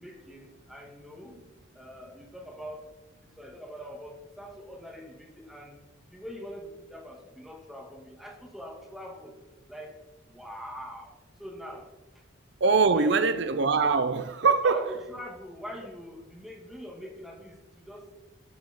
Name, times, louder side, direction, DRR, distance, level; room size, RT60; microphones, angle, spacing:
voice 1, 0.0-1.4 1.7-2.9 3.2-5.8 6.1-9.4 9.7-10.0 10.3-11.1 11.4-11.9 12.1-12.2 12.9-13.4 14.6-18.1, equal, ahead, 2.2 m, -43 dB
voice 2, 12.6-14.8, right 4 dB, 60° right, 0.6 m, -23 dB
17.5 x 7.3 x 3.8 m
head